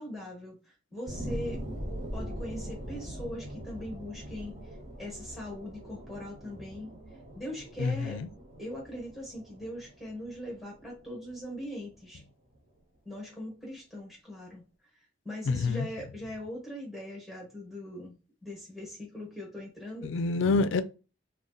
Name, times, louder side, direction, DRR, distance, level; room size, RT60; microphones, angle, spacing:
voice 1, 0.0-1.6 2.1-6.9 7.3-8.2 8.6-12.2 13.0-14.6 15.2-18.2 18.4-20.1, left 1 dB, ahead, 1.1 m, -41 dB
sound 1, 1.1-12.1 12.5-12.6, equal, 35° right, 1.3 m, -42 dB
voice 2, 7.8-8.3 15.5-15.9 20.0-20.8, left 3 dB, 80° left, 0.3 m, -27 dB
3.7 x 2.3 x 2.5 m
head